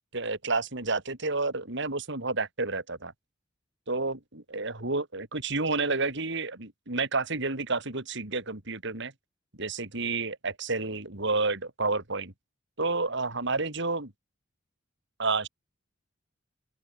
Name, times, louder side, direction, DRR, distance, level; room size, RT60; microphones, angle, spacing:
voice 1, 0.1-3.1 3.9-9.1 9.6-12.3 12.8-14.1 15.2-15.5, right 3 dB, 65° right, 3.9 m, -30 dB
open air
head